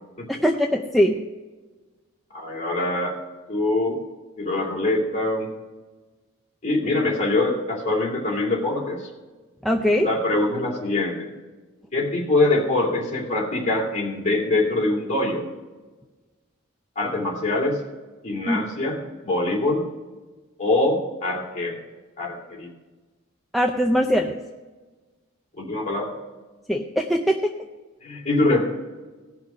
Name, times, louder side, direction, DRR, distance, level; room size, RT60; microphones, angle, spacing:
voice 1, 0.4-1.2 9.6-10.1 18.5-18.6 23.5-24.4 26.7-27.5, equal, ahead, 1 dB, 0.5 m, -21 dB
voice 2, 2.3-3.2 3.5-4.0 4.4-5.5 6.6-9.1 10.0-11.3 11.9-15.4 17.0-17.8 18.2-19.0 19.2-19.8 20.6-21.8 22.2-22.7 25.6-26.1 28.0-28.6, left 2 dB, 30° left, -2 dB, 2.7 m, -23 dB
18.0 x 6.0 x 5.1 m, 1.3 s
head